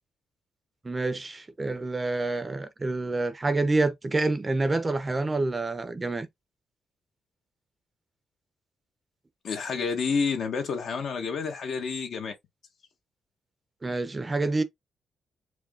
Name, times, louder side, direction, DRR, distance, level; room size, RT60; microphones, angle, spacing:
voice 1, 0.8-6.3 13.8-14.6, right 2 dB, 20° right, 0.7 m, -27 dB
voice 2, 9.4-12.3, left 5 dB, 65° left, 1.4 m, -29 dB
4.8 x 2.3 x 3.7 m
cardioid pair, 120°, 0 cm